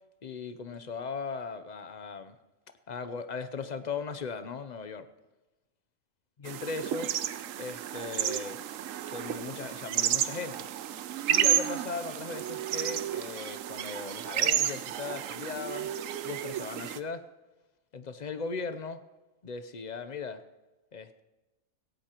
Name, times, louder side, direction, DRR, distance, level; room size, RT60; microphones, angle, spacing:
voice 1, 0.2-2.3 2.9-5.1 6.4-7.1 7.6-8.6 9.0-10.7 11.3-15.9 16.2-17.2 17.9-19.0 19.4-20.4 20.9-21.2, left 4 dB, 45° left, 11 dB, 0.6 m, -38 dB
sound 1, 6.5-17.0, right 11 dB, 75° right, 1.0 m, -31 dB
17.0 x 16.5 x 3.0 m, 1.1 s
omnidirectional pair, 1.4 m